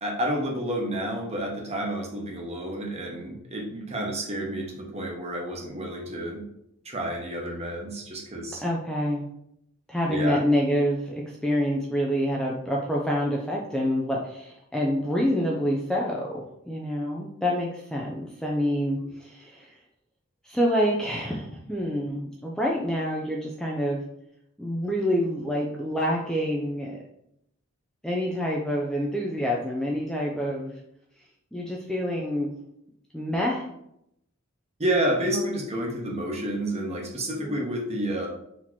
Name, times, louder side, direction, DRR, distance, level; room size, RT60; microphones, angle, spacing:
voice 1, 0.0-6.5 6.8-8.6 10.1-10.4 34.8-38.3, right 1 dB, 30° right, 0 dB, 0.9 m, -30 dB
voice 2, 8.6-9.2 9.9-19.8 20.4-24.0 24.6-27.0 28.0-30.7 31.5-32.5 33.1-33.7 35.3-35.6 37.4-37.5, equal, 5° left, -3 dB, 0.4 m, -27 dB
4.0 x 2.9 x 4.5 m, 0.77 s
head